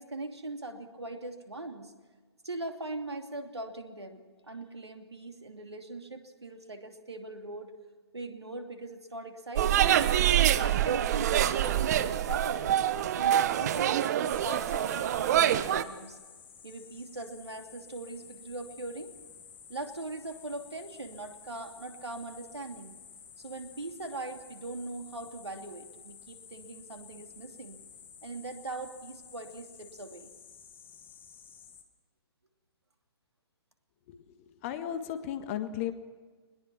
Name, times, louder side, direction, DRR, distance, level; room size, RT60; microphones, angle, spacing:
voice 1, 0.0-1.9 2.4-7.7 8.1-9.9 10.4-12.7 13.2-16.2 16.6-19.1 19.7-23.0 23.4-27.8 28.2-30.4, right 2 dB, 75° right, 5 dB, 2.8 m, -40 dB
sound 1, 9.6-15.8, right 11 dB, 40° right, 1.0 m, -26 dB
sound 2, 14.3-31.8, left 7 dB, 15° left, 1.8 m, -52 dB
voice 2, 34.6-35.9, left 10 dB, 30° left, 9 dB, 1.7 m, -34 dB
22.0 x 20.5 x 6.0 m, 1.4 s
figure-of-eight pair, 130°, 14 cm